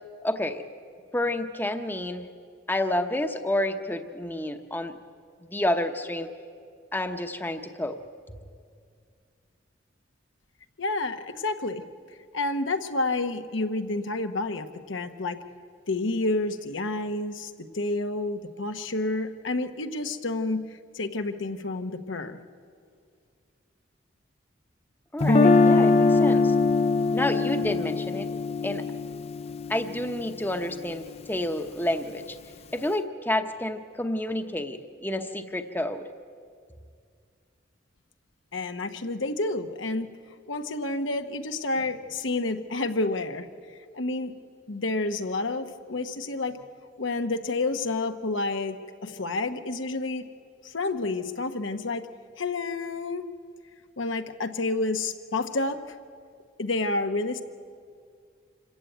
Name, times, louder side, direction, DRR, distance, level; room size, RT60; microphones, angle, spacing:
voice 1, 0.2-0.6 1.1-2.3 2.7-5.0 5.5-6.3 6.9-8.0 25.1-26.5 27.1-28.3 28.6-28.8 29.7-32.4 32.7-36.1, left 1 dB, 10° left, 7 dB, 0.9 m, -29 dB
voice 2, 10.8-11.8 12.3-15.4 15.9-22.4 38.5-40.1 40.5-43.5 43.9-44.3 44.7-46.6 47.0-48.8 49.0-50.3 50.6-52.1 52.4-53.3 54.0-55.8 56.6-57.4, left 2 dB, 80° left, 7 dB, 1.1 m, -29 dB
Guitar, 25.2-31.2, left 3 dB, 35° left, 0.5 m, -23 dB
26.5 x 15.0 x 9.2 m, 2.2 s
head